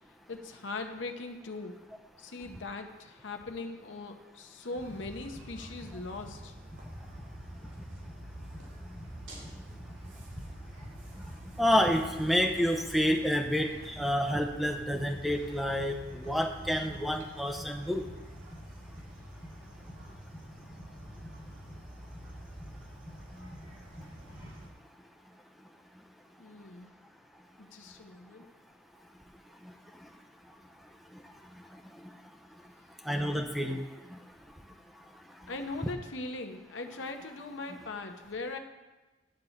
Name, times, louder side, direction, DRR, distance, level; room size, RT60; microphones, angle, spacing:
voice 1, 0.3-1.8 2.2-6.5 26.4-26.9 27.6-28.5 35.5-38.6, left 3 dB, 75° left, 5 dB, 0.9 m, -40 dB
sound 1, 4.8-24.7, equal, 80° right, 2.3 m, -46 dB
voice 2, 11.6-18.0 33.0-33.8 34.1-34.2, equal, ahead, 3 dB, 0.6 m, -28 dB
11.0 x 4.1 x 7.2 m, 1.2 s
head